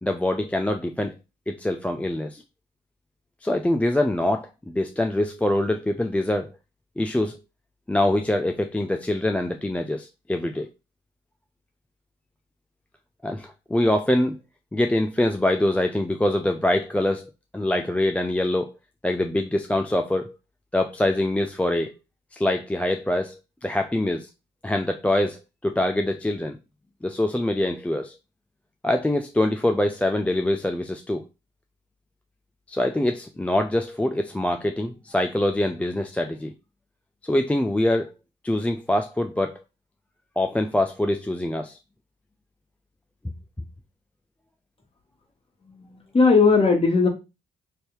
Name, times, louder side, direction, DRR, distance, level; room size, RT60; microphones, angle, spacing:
voice 1, 0.0-1.1 1.5-2.4 3.4-6.5 7.0-7.4 7.9-10.7 13.2-14.4 14.7-18.7 19.0-20.4 20.7-21.9 22.3-24.3 24.6-26.6 27.0-28.2 28.8-31.2 32.7-36.5 37.2-38.1 38.4-39.6 40.4-41.8, left 1 dB, 5° left, 4 dB, 0.4 m, -24 dB
voice 2, 45.7-47.1, left 4 dB, 30° left, 2 dB, 1.6 m, -18 dB
3.4 x 2.7 x 4.5 m, 0.26 s
cardioid pair, 90°, 20 cm